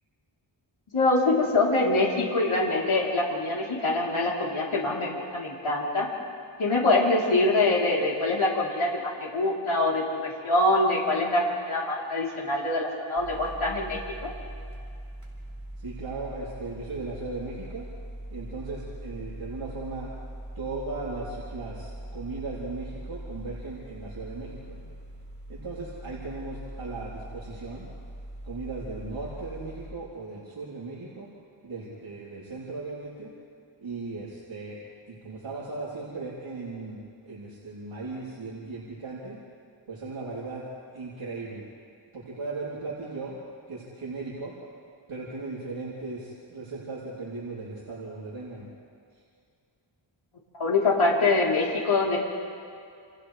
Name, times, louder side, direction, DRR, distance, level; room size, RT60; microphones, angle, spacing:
voice 1, 0.9-6.1 6.6-14.3 50.6-52.2, left 2 dB, 80° left, -4 dB, 3.6 m, -24 dB
sound 1, 13.2-29.9, right 1 dB, 35° right, 4.6 m, -41 dB
voice 2, 15.8-17.9 18.3-20.1 20.6-24.8 25.5-27.8 28.5-31.3 31.6-33.3 33.8-34.8 35.1-39.4 39.9-40.6 40.9-41.6 42.1-43.4 43.7-44.5 45.1-48.7, right 3 dB, 85° right, -7 dB, 3.6 m, -37 dB
29.5 x 28.5 x 3.3 m, 2.4 s
wide cardioid pair, 120°, 48 cm